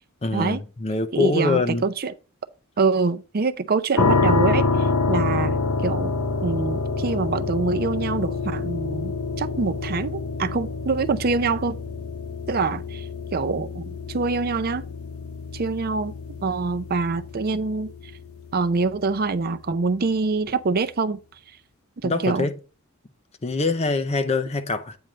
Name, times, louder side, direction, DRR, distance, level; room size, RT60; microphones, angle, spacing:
voice 1, 0.2-1.8 22.0-22.5 23.4-25.0, left 3 dB, 30° left, 0.6 m, -24 dB
voice 2, 1.1-2.1 2.8-6.2 6.4-11.8 12.5-13.0 13.3-14.8 15.5-16.1 16.4-17.9 18.5-21.2 22.0-22.5, right 4 dB, 45° right, 0.5 m, -25 dB
sound 1, 4.0-18.8, left 4 dB, 90° left, 0.8 m, -27 dB
8.8 x 3.2 x 6.1 m
head